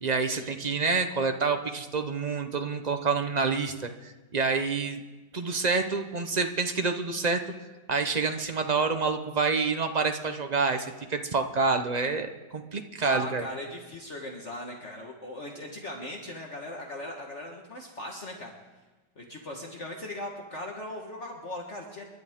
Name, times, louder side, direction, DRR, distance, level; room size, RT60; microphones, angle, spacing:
voice 1, 0.0-5.0 5.3-7.4 7.9-13.4, right 4 dB, 35° right, 6 dB, 0.7 m, -28 dB
voice 2, 13.0-18.5 19.2-22.0, left 1 dB, 40° left, 0 dB, 1.7 m, -39 dB
29.0 x 11.5 x 3.7 m, 1.2 s
omnidirectional pair, 1.9 m